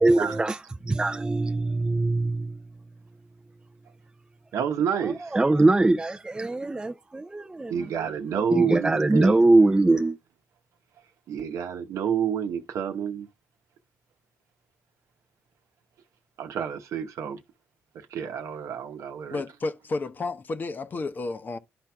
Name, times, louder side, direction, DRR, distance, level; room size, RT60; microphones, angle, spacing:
voice 1, 0.0-2.6 4.9-10.2, right 2 dB, 15° right, 0.5 m, -22 dB
voice 2, 4.5-5.4 7.7-9.4 11.3-13.3 16.4-17.4 18.1-19.4, right 7 dB, 70° right, 0.9 m, -29 dB
voice 3, 19.3-21.6, left 3 dB, 35° left, 0.8 m, -31 dB
12.5 x 4.4 x 2.3 m
cardioid pair, 90°, 5 cm